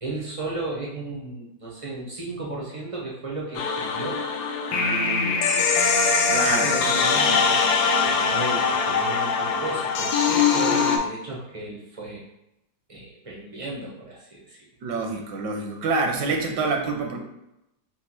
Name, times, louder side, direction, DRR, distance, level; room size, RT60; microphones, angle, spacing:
voice 1, 0.0-4.3 6.4-12.2 12.9-14.6, right 2 dB, 60° right, -5 dB, 0.3 m, -34 dB
sound 1, 3.5-11.0, left 5 dB, 75° left, 1.1 m, -22 dB
voice 2, 4.7-5.7 6.3-6.6 14.8-17.2, right 3 dB, 80° right, 3 dB, 1.3 m, -27 dB
4.3 x 2.1 x 4.2 m, 0.89 s
omnidirectional pair, 1.8 m